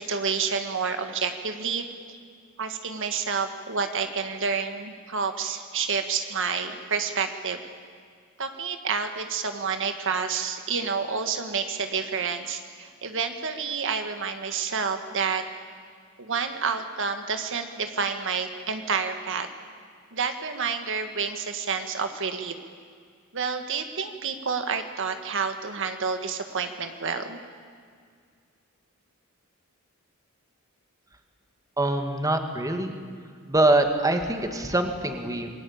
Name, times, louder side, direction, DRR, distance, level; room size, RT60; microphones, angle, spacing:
voice 1, 0.0-2.2 2.6-7.6 8.4-15.5 16.2-19.5 20.1-22.5 23.3-27.4, right 5 dB, 60° right, 7 dB, 1.7 m, -29 dB
voice 2, 31.8-33.0 33.5-35.5, right 2 dB, 15° right, 5 dB, 2.1 m, -24 dB
28.0 x 21.5 x 8.7 m, 2.1 s
head